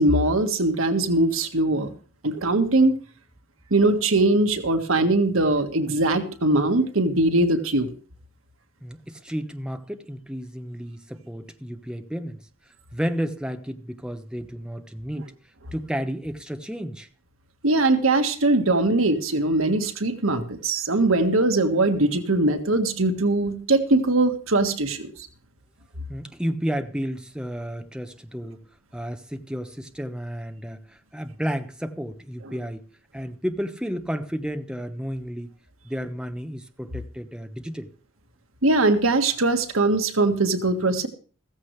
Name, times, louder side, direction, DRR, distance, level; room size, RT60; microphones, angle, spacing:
voice 1, 0.0-1.9 2.2-3.0 3.7-7.9 17.6-25.1 38.6-41.1, right 2 dB, 80° right, 7 dB, 1.8 m, -21 dB
voice 2, 8.8-12.4 12.9-15.3 15.7-17.1 26.1-28.6 28.9-32.8 33.1-35.5 35.8-37.9, equal, 5° right, 7 dB, 1.1 m, -32 dB
15.0 x 14.5 x 3.3 m, 0.41 s
head